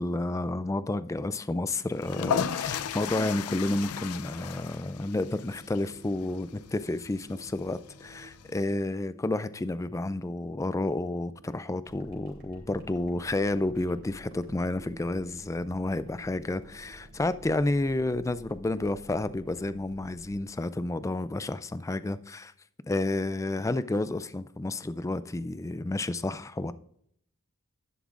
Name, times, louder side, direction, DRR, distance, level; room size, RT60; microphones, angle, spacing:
voice 1, 0.0-22.5 22.9-26.7, left 2 dB, 15° left, 0.3 m, -30 dB
sound 1, 1.9-8.7, left 8 dB, 80° left, 0.5 m, -36 dB
sound 2, 3.5-18.3, right 1 dB, 90° right, 2.8 m, -56 dB
sound 3, 11.8-20.4, equal, 55° right, 2.9 m, -51 dB
11.0 x 10.5 x 2.5 m
head